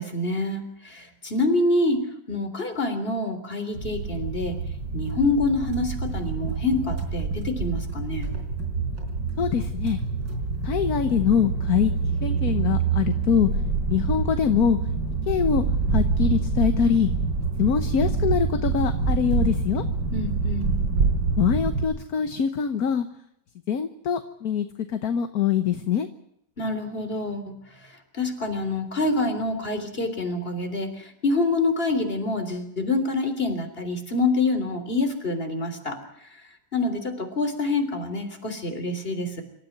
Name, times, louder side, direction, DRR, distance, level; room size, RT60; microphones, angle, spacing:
voice 1, 0.0-2.0 2.3-4.6 4.9-8.3 20.1-20.7 26.6-39.4, left 2 dB, 30° left, 6 dB, 3.7 m, -26 dB
sound 1, 3.7-21.8, right 4 dB, 80° right, 5.1 m, -26 dB
voice 2, 9.4-10.0 10.6-11.9 12.2-13.5 13.9-14.8 15.3-15.6 15.9-17.1 17.6-19.8 21.3-23.1 23.7-26.1, left 7 dB, 60° left, 9 dB, 1.5 m, -23 dB
26.5 x 14.0 x 9.3 m, 0.75 s
omnidirectional pair, 1.9 m